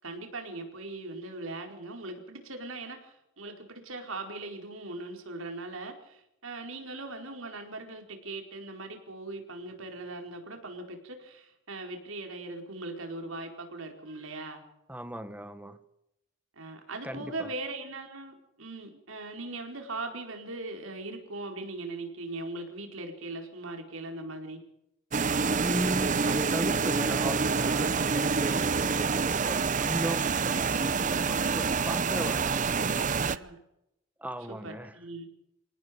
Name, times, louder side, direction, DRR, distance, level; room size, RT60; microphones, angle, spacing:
voice 1, 0.0-14.6 16.6-24.6 33.0-33.6 34.5-35.3, right 2 dB, 75° right, 4 dB, 4.7 m, -40 dB
voice 2, 14.9-15.8 17.0-17.5 25.6-33.2 34.2-35.0, right 1 dB, 5° right, 11 dB, 1.3 m, -37 dB
sound 1, 25.1-33.4, right 5 dB, 40° right, 0.7 m, -27 dB
27.0 x 18.5 x 5.3 m, 0.84 s
head